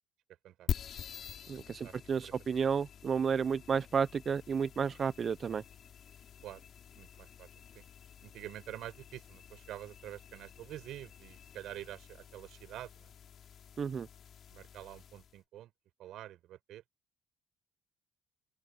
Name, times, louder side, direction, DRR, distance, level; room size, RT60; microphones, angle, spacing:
sound 1, 0.7-15.4, left 8 dB, 55° left, 6.2 m, -46 dB
voice 1, 1.5-5.6 13.8-14.1, right 6 dB, 45° right, 0.8 m, -32 dB
voice 2, 6.9-7.5 7.7-7.8 8.2-13.1 14.5-15.7 16.0-16.8, right 13 dB, 70° right, 5.9 m, -47 dB
open air
supercardioid pair, 80°, 0 cm